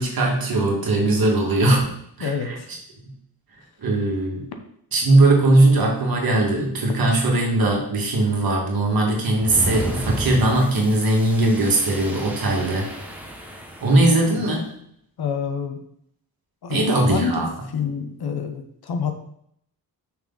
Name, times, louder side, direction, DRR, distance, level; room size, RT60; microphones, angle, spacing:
voice 1, 0.0-1.8 2.2-2.6 3.8-4.5 4.9-12.9 13.8-14.7 16.7-17.5, right 2 dB, 55° right, -1 dB, 2.1 m, -19 dB
voice 2, 2.2-2.7 5.2-5.3 14.3-14.4 15.2-15.8 16.6-17.4 17.7-19.1, left 6 dB, 65° left, 6 dB, 1.0 m, -27 dB
sound 1, 9.4-14.3, right 1 dB, 5° right, 1.0 m, -32 dB
6.4 x 6.0 x 4.0 m, 0.70 s
wide cardioid pair, 160°, 42 cm